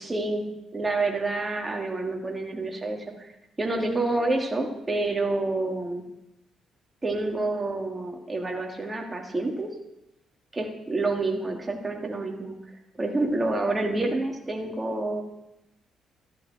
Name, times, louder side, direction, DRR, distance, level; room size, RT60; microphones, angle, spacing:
voice 1, 0.0-3.3 3.6-6.0 7.0-9.7 10.5-12.5 13.0-15.2, right 2 dB, 20° right, 1 dB, 3.0 m, -28 dB
14.5 x 13.5 x 4.6 m, 0.87 s
cardioid pair, 90°, 0 cm